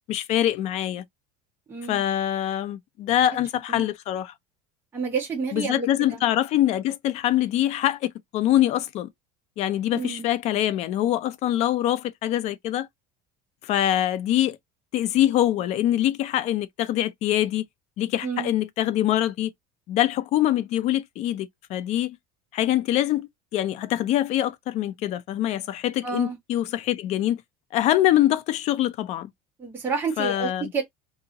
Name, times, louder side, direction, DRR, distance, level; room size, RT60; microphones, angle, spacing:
voice 1, 0.1-1.0 1.9-4.3 5.5-9.1 9.6-12.9 13.6-14.6 14.9-17.6 18.0-19.5 19.9-22.2 22.5-27.4 27.7-29.3 30.2-30.7, left 12 dB, 35° left, 0.5 m, -24 dB
voice 2, 1.7-2.0 3.7-3.8 4.9-5.9 9.9-10.3 18.2-18.6 26.0-26.4 29.6-30.8, right 5 dB, 10° right, 1.0 m, -29 dB
2.8 x 2.7 x 3.9 m
cardioid pair, 170°, 18 cm